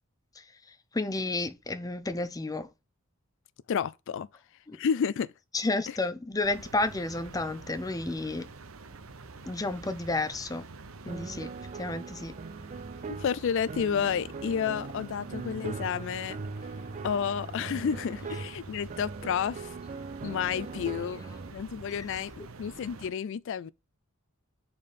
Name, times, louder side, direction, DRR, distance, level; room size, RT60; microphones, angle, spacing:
voice 1, 0.9-2.7 4.7-4.8 5.5-8.5 9.5-10.7 11.0-11.5 11.8-12.3, left 2 dB, 15° left, 0.6 m, -31 dB
voice 2, 3.7-4.3 4.7-5.3 5.9-6.0 13.1-16.4 17.0-19.7 20.2-21.2 21.5-23.7, left 7 dB, 65° left, 0.3 m, -31 dB
sound 1, 6.4-23.1, right 3 dB, 80° right, 0.8 m, -47 dB
sound 2, 11.1-21.5, right 4 dB, 35° right, 0.4 m, -40 dB
5.2 x 4.4 x 5.2 m
head